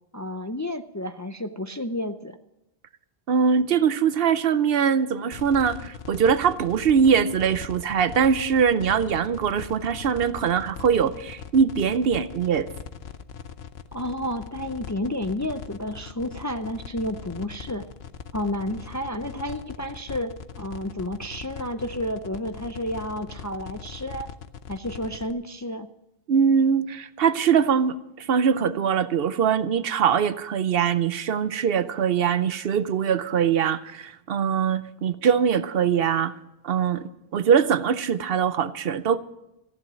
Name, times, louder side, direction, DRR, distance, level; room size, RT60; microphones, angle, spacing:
voice 1, 0.1-2.4 13.9-17.8 18.3-20.3 20.6-24.3 24.7-25.9, left 1 dB, 25° left, 8 dB, 0.4 m, -31 dB
voice 2, 3.3-12.7 26.3-36.3 36.6-39.2, right 7 dB, 65° right, 14 dB, 0.8 m, -22 dB
sound 1, 5.3-25.3, left 7 dB, 80° left, 1.0 m, -40 dB
15.0 x 11.0 x 6.2 m, 0.88 s
omnidirectional pair, 1.1 m